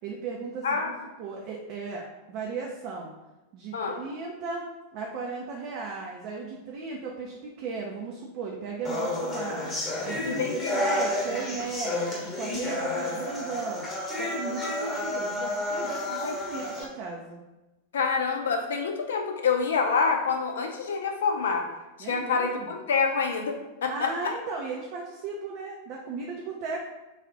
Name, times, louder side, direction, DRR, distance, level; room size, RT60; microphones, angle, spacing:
voice 1, 0.0-3.1 3.5-4.6 4.9-9.7 10.0-13.9 14.1-17.4 22.0-22.7 23.9-26.8, right 4 dB, 45° right, -1 dB, 0.5 m, -36 dB
sound 1, 8.8-16.8, left 1 dB, 20° left, 1.1 m, -31 dB
voice 2, 10.2-10.8 16.1-16.4 17.9-21.7 22.0-24.4, left 5 dB, 65° left, 4 dB, 0.5 m, -27 dB
3.3 x 2.4 x 3.8 m, 1.0 s
figure-of-eight pair, 90°, 0 cm